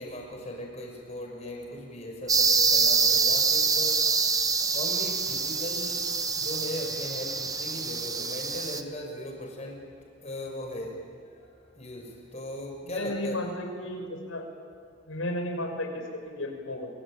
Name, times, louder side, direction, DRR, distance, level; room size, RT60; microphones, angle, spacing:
voice 1, 0.0-4.1 4.7-13.4, left 1 dB, 35° left, 1 dB, 5.9 m, -38 dB
sound 1, 2.3-8.8, right 5 dB, 15° right, 1.1 m, -25 dB
voice 2, 12.8-14.4 15.1-16.9, left 1 dB, 85° left, 3 dB, 5.7 m, -33 dB
26.0 x 25.0 x 9.0 m, 2.1 s
head